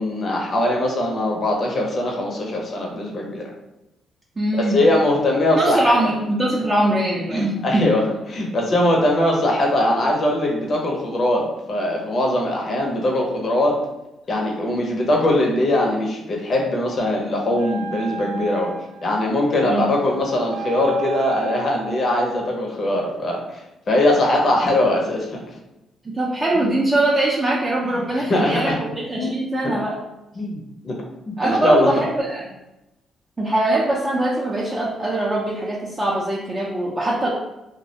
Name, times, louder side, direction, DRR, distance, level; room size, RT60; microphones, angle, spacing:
voice 1, 0.0-3.4 4.5-6.1 7.3-13.8 14.3-18.7 19.0-23.6 23.9-25.4 26.5-26.6 27.8-28.8 29.2-29.4 29.6-29.7 30.4-30.6 30.8-31.0 31.2-31.9, left 1 dB, 45° left, -1 dB, 0.6 m, -21 dB
voice 2, 4.4-4.8 5.5-7.9 19.6-19.9 26.0-30.0 31.4-32.5 33.4-37.3, right 1 dB, 25° right, -4 dB, 0.4 m, -22 dB
Wind instrument woodwind instrument, 17.5-22.1, right 7 dB, 85° right, 0.4 m, -33 dB
2.3 x 2.1 x 2.7 m, 0.94 s
cardioid pair, 90°, 0 cm